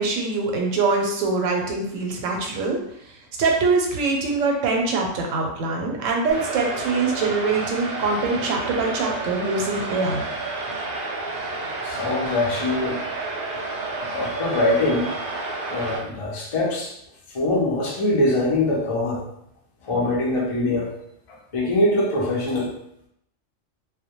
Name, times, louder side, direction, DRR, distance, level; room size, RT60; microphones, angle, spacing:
voice 1, 0.0-2.8 3.0-10.2, right 3 dB, 85° right, 1 dB, 1.0 m, -23 dB
sound 1, 6.3-16.0, right 3 dB, 60° right, 0.6 m, -30 dB
voice 2, 11.8-13.0 14.1-15.1 15.7-16.9 17.3-19.2 19.8-20.9 21.5-22.7, left 2 dB, 50° left, -3 dB, 0.4 m, -23 dB
2.2 x 2.1 x 2.8 m, 0.73 s
omnidirectional pair, 1.3 m